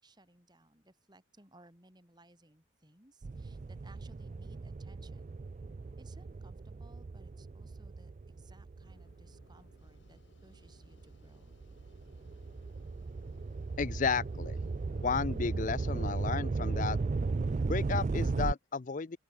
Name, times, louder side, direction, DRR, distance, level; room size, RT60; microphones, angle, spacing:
voice 1, 0.0-5.4 6.0-11.6, right 1 dB, 20° right, 5.8 m, -61 dB
sound 1, 3.2-10.0 10.5-18.5, right 3 dB, 35° right, 0.3 m, -36 dB
sound 2, 8.8-16.3, left 1 dB, 65° left, 2.4 m, -62 dB
voice 2, 13.8-14.6 14.9-17.0 17.7-19.2, left 5 dB, 40° left, 0.5 m, -33 dB
open air
head